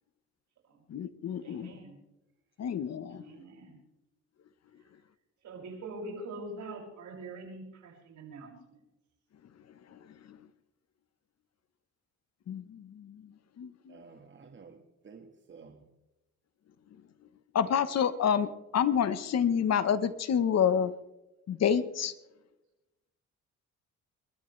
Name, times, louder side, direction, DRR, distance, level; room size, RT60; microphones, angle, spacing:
voice 1, 0.9-1.7 2.6-3.3 9.9-10.0 12.5-13.2 13.6-14.0 17.5-20.9 21.5-22.1, left 8 dB, 60° left, 13 dB, 1.2 m, -28 dB
voice 2, 1.4-1.9 3.1-3.8 5.4-8.8, right 2 dB, 70° right, 0 dB, 6.6 m, -44 dB
voice 3, 13.9-15.9, right 5 dB, 40° right, 4 dB, 1.7 m, -52 dB
29.0 x 13.0 x 3.3 m, 0.98 s
cardioid pair, 90°, 30 cm